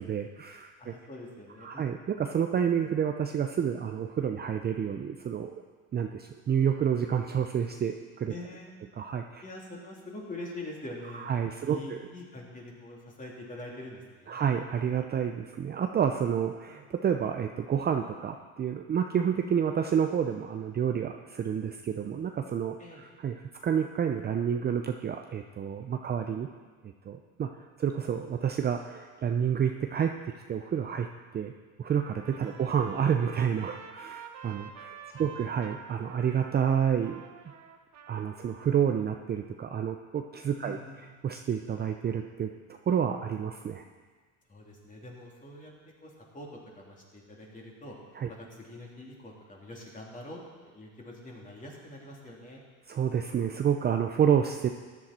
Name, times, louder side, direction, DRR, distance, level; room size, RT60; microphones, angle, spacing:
voice 1, 0.0-0.9 1.6-5.5 5.9-8.3 9.0-9.4 11.2-12.0 14.3-26.5 27.1-27.5 27.8-30.1 30.5-31.1 31.3-31.5 31.8-37.2 38.1-40.8 41.2-42.5 42.9-43.8 48.2-48.3 52.9-54.7, right 8 dB, 25° right, 4 dB, 0.6 m, -29 dB
voice 2, 0.8-1.9 8.3-8.9 9.4-11.3 11.6-14.4 16.7-16.8 22.8-23.0 32.4-32.6 35.1-35.4 40.6-41.0 44.5-45.7 46.0-47.9 48.3-52.6, left 1 dB, 20° left, -2 dB, 3.2 m, -44 dB
Trumpet, 31.9-39.0, right 7 dB, 45° right, 1.3 m, -48 dB
14.0 x 11.0 x 4.3 m, 1.5 s
supercardioid pair, 100°, 37 cm